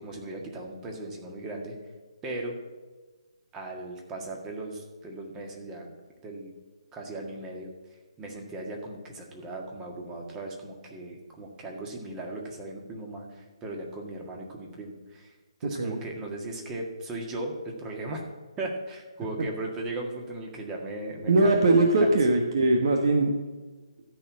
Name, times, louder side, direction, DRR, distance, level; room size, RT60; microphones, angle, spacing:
voice 1, 0.0-1.8 2.2-2.6 3.5-5.9 6.2-6.5 6.9-7.7 8.2-15.3 15.6-18.2 18.6-21.6 22.0-22.2, right 2 dB, 15° right, 1 dB, 1.8 m, -37 dB
voice 2, 15.6-16.0 21.3-23.3, right 2 dB, 50° right, 2 dB, 1.3 m, -21 dB
13.5 x 4.6 x 8.6 m, 1.3 s
figure-of-eight pair, 150°, 3 cm